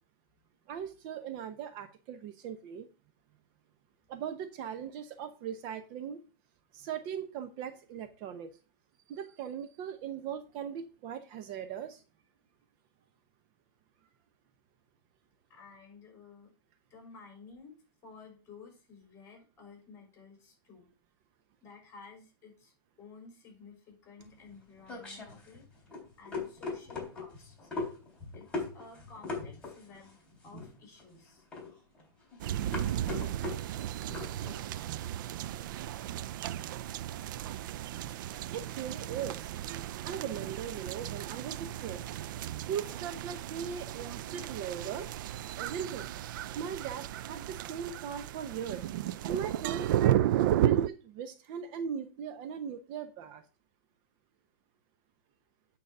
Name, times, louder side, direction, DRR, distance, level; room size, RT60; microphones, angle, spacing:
voice 1, 0.7-2.9 4.1-6.2 6.7-8.5 9.1-12.0 38.5-39.5 40.0-42.0 42.7-45.1 45.6-46.1 46.5-48.9 49.2-50.2 50.5-53.4, right 8 dB, 40° right, 9 dB, 0.9 m, -39 dB
voice 2, 15.5-16.5 16.9-17.7 18.0-20.9 21.6-22.7 23.0-25.7 26.2-27.7 28.3-30.2 30.4-31.5, left 4 dB, 25° left, 2 dB, 4.8 m, -53 dB
sound 1, 24.2-34.6, left 3 dB, 10° left, 3.6 m, -40 dB
sound 2, 32.4-50.9, right 12 dB, 65° right, 0.4 m, -34 dB
8.9 x 4.0 x 6.8 m, 0.35 s
supercardioid pair, 155°, 11 cm